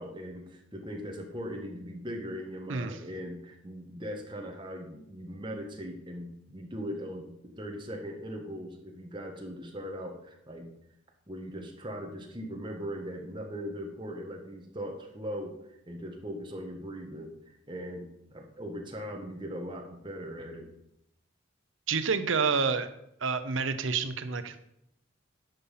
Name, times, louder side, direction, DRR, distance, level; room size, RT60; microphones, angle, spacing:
voice 1, 0.0-7.3 7.6-10.7 11.3-15.5 15.9-20.7, equal, 25° right, 2 dB, 1.5 m, -39 dB
voice 2, 21.9-22.9 23.2-24.7, right 5 dB, 70° right, 10 dB, 0.8 m, -29 dB
10.5 x 5.7 x 5.6 m, 0.79 s
head